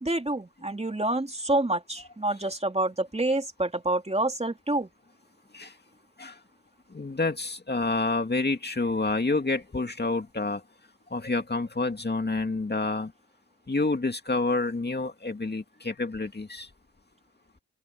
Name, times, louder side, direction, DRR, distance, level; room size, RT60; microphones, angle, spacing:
voice 1, 0.0-4.9, right 2 dB, 20° right, 2.8 m, -27 dB
voice 2, 6.9-10.6 11.1-13.1 13.7-16.7, left 3 dB, 30° left, 2.2 m, -28 dB
open air
cardioid pair, 70°, 35 cm